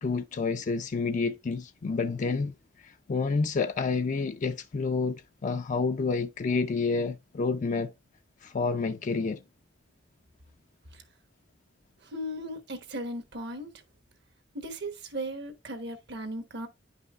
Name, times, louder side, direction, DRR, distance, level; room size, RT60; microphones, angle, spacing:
voice 1, 0.0-2.5 2.8-7.9 8.4-9.4, left 4 dB, 40° left, 0.4 m, -29 dB
voice 2, 12.0-13.8 14.5-16.7, right 1 dB, 60° right, 1.1 m, -37 dB
9.9 x 5.4 x 2.4 m
head